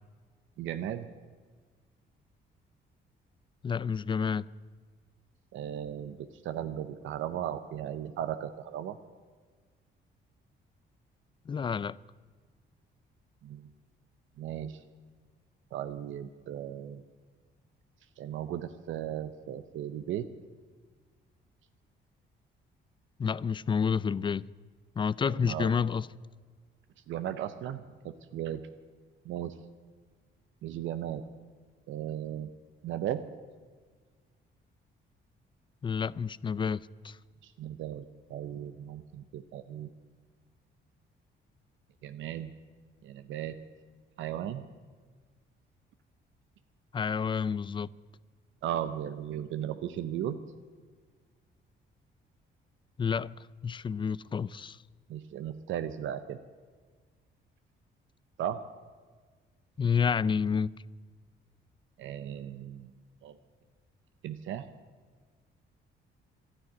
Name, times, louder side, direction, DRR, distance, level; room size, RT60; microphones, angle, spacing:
voice 1, 0.6-1.1 5.5-9.0 13.4-13.7 14.4-14.8 15.7-17.0 18.2-20.3 25.3-25.7 27.1-28.6 29.2-29.5 30.6-31.2 31.9-32.5 32.8-33.2 37.4-38.0 38.3-39.9 42.0-42.5 43.0-43.6 44.2-44.6 48.6-50.4 55.1-56.4 58.4-58.6 62.0-62.9 63.2-63.4 64.2-64.7, right 10 dB, 80° right, 0.7 m, -36 dB
voice 2, 3.6-4.5 11.5-12.0 23.2-24.4 25.0-26.1 35.8-37.2 46.9-47.9 53.0-53.3 53.6-54.8 59.8-60.7, left 6 dB, 25° left, 0.3 m, -29 dB
12.0 x 9.9 x 9.6 m
cardioid pair, 90°, 20 cm